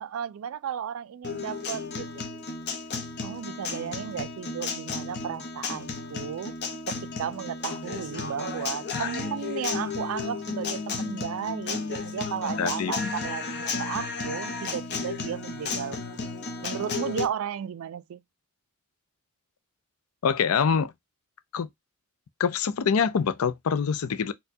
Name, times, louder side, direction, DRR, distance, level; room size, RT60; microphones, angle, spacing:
voice 1, 0.0-2.2 3.2-6.6 6.9-16.2 16.6-18.2, right 8 dB, 70° right, 0.3 m, -34 dB
Guitar, 1.2-17.3, left 4 dB, 50° left, 0.7 m, -33 dB
voice 2, 12.6-13.1 20.2-20.9 21.5-21.7 22.4-24.3, left 6 dB, 85° left, 0.5 m, -25 dB
4.3 x 2.2 x 2.6 m
head